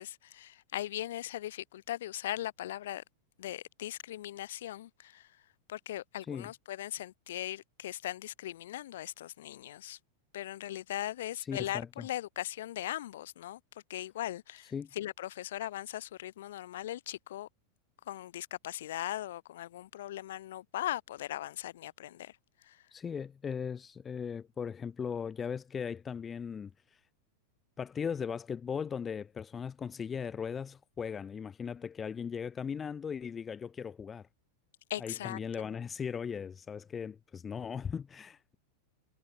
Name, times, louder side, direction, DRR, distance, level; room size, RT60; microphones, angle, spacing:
voice 1, 0.0-3.0 3.4-5.3 5.7-10.0 10.3-13.6 13.9-17.5 18.1-22.3 22.6-22.8 34.9-35.8, left 13 dB, 60° left, 1.6 m, -39 dB
voice 2, 11.4-12.1 14.7-14.9 22.9-27.0 27.8-34.3 35.0-38.5, left 7 dB, 20° left, 0.8 m, -38 dB
figure-of-eight pair, 90°, 0 cm